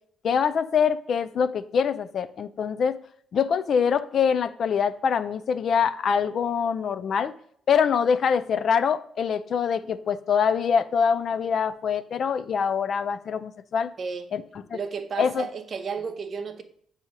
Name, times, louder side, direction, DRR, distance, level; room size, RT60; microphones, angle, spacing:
voice 1, 0.2-3.0 3.3-7.3 7.7-13.9 14.3-14.4 14.7-14.8 15.2-15.5, left 7 dB, 60° left, 13 dB, 0.4 m, -24 dB
voice 2, 14.0-14.3 14.7-16.6, right 5 dB, 50° right, 7 dB, 0.7 m, -33 dB
7.2 x 2.7 x 4.8 m, 0.64 s
cardioid pair, 90°, 0 cm